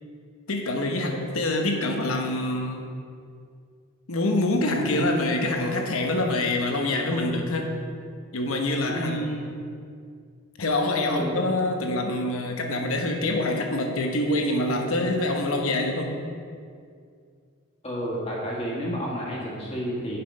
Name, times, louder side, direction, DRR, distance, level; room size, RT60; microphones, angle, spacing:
voice 1, 0.5-2.9 4.1-7.7 8.3-9.3 10.6-16.2, left 2 dB, 75° left, 3 dB, 1.0 m, -25 dB
voice 2, 8.9-9.4 11.1-11.3 17.8-20.2, equal, 30° left, -4 dB, 1.8 m, -30 dB
8.1 x 5.9 x 5.4 m, 2.2 s
head